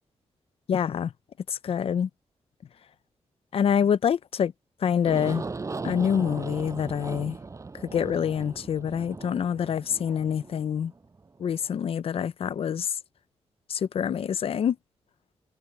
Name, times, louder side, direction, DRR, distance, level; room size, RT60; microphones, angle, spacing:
voice 1, 0.7-1.1 1.5-2.1 3.5-4.5 4.8-5.4 5.8-7.4 7.9-10.9 11.4-13.0 13.7-14.8, left 8 dB, 60° left, 0.6 m, -26 dB
Aircraft, 5.0-11.7, right 4 dB, 30° right, 7.4 m, -38 dB
wide cardioid pair, 150°, 11 cm